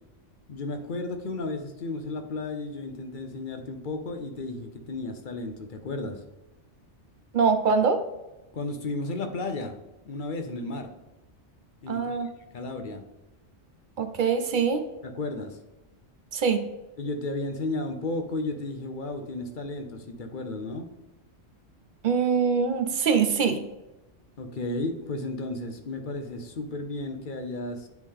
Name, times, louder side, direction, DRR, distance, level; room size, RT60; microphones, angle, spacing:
voice 1, 0.5-6.2 8.5-9.7 10.1-10.9 11.8-12.2 12.5-13.0 15.0-15.6 17.0-20.9 24.4-27.9, left 2 dB, 50° left, 6 dB, 0.8 m, -33 dB
voice 2, 7.3-8.0 11.9-12.3 14.0-14.8 16.3-16.6 22.0-23.6, right 6 dB, 55° right, 8 dB, 0.6 m, -23 dB
9.2 x 3.3 x 3.7 m, 1.0 s
omnidirectional pair, 1.2 m